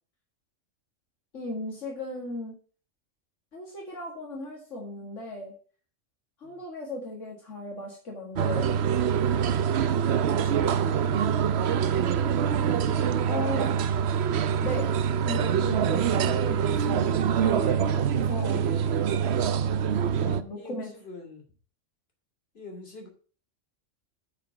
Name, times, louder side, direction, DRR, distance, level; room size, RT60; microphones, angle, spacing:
voice 1, 1.3-2.5 3.5-5.5 6.4-8.7 13.2-13.7 14.6-14.9 15.2-18.6 20.2-20.9, left 2 dB, 70° left, -1 dB, 2.3 m, -36 dB
sound 1, 8.4-20.4, right 8 dB, 65° right, 0.8 m, -25 dB
voice 2, 9.8-12.0 20.0-21.4 22.5-23.1, left 3 dB, 50° left, 1 dB, 2.8 m, -45 dB
9.1 x 5.2 x 6.0 m, 0.39 s
omnidirectional pair, 1.3 m